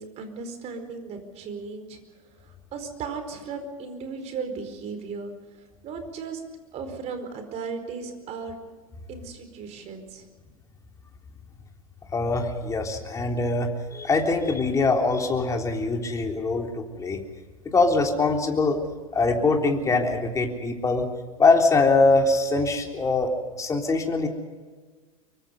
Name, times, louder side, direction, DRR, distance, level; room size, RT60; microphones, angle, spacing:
voice 1, 0.0-2.0 2.4-5.3 5.8-6.4 6.7-8.6 9.1-10.3, right 5 dB, 35° right, 7 dB, 4.6 m, -36 dB
voice 2, 12.1-17.2 17.7-18.8 19.1-21.1 21.4-24.3, left 3 dB, 15° left, 2 dB, 3.6 m, -23 dB
25.0 x 23.5 x 5.4 m, 1.4 s
hypercardioid pair, 95°, 18 cm